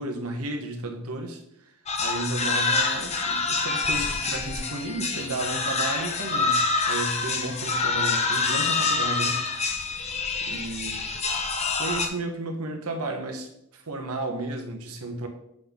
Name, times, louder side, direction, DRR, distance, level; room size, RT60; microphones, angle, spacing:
voice 1, 0.0-1.7 2.0-9.4 10.5-11.1 11.8-15.3, right 2 dB, 80° right, 4 dB, 1.2 m, -33 dB
sound 1, 1.9-12.1, left 4 dB, 30° left, 0.8 m, -26 dB
7.7 x 5.7 x 3.7 m, 0.77 s
head